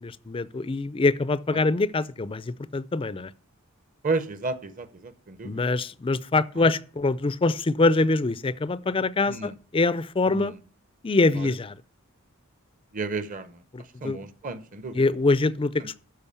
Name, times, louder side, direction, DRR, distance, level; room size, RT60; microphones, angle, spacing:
voice 1, 0.0-3.3 5.4-10.5 11.0-11.8 13.7-14.2 14.9-16.0, left 3 dB, 25° left, 0.4 m, -24 dB
voice 2, 4.0-5.6 6.6-6.7 9.3-9.5 10.3-10.6 11.4-11.5 12.9-13.6 14.0-15.0 15.8-15.9, right 3 dB, 40° right, 0.8 m, -32 dB
12.5 x 5.1 x 6.8 m
head